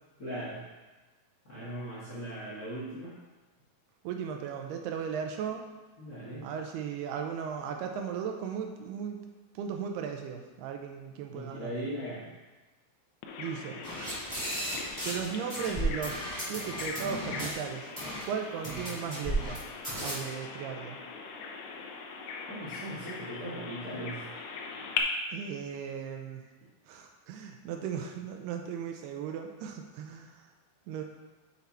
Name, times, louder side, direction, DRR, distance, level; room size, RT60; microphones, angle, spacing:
voice 1, 0.2-0.6 1.4-3.1 6.0-6.5 11.3-12.3 22.5-24.2, right 1 dB, 50° left, -8 dB, 1.1 m, -39 dB
voice 2, 4.0-5.7 6.4-9.2 9.6-11.7 13.4-13.8 15.0-16.2 16.5-17.9 18.3-19.6 20.0-21.0 23.0-23.1 25.3-26.4 26.9-30.3 30.9-31.0, right 7 dB, 80° right, 4 dB, 2.7 m, -36 dB
Bird vocalization bird call bird song, 13.2-25.0, left 6 dB, 80° left, 2.7 m, -41 dB
sound 1, 13.8-15.2 15.5-17.5 18.0-18.2 18.6-19.6 19.8-20.1, right 1 dB, 10° right, 1.8 m, -35 dB
6.9 x 6.2 x 4.3 m, 1.2 s
omnidirectional pair, 4.7 m